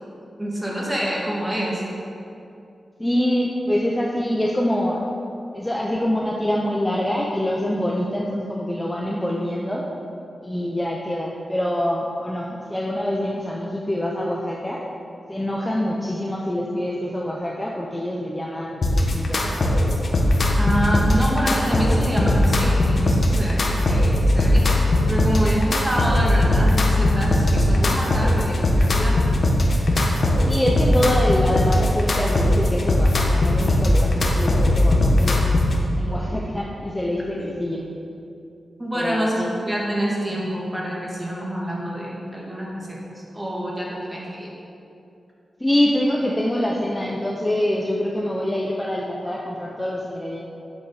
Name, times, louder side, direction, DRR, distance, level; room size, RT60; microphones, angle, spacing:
voice 1, 0.4-1.8 20.6-29.2 38.8-43.0 43.3-44.5, equal, 15° right, -4 dB, 2.3 m, -26 dB
voice 2, 3.0-5.0 5.5-9.8 10.4-14.8 15.3-19.4 30.4-35.4 36.0-37.9 38.9-39.6 45.6-50.5, left 1 dB, 10° left, -2 dB, 0.8 m, -25 dB
sound 1, 18.8-35.8, left 1 dB, 55° left, 1.2 m, -19 dB
8.2 x 7.8 x 4.9 m, 2.6 s
wide cardioid pair, 85°, 0 cm